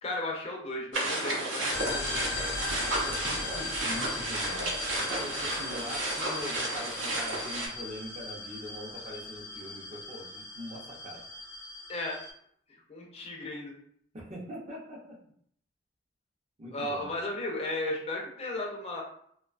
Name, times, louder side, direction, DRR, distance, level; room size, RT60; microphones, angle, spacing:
voice 1, 0.0-2.4 11.9-12.2 12.9-13.7 16.7-19.0, left 1 dB, 35° left, -1 dB, 0.5 m, -35 dB
sound 1, 0.9-7.7, right 1 dB, 75° right, 0.7 m, -32 dB
sound 2, 1.7-12.3, left 2 dB, 90° left, 0.7 m, -39 dB
voice 2, 3.0-4.7 5.0-11.2 14.1-15.2 16.6-17.1, equal, 35° right, -3 dB, 0.6 m, -42 dB
2.6 x 2.2 x 2.4 m, 0.65 s
head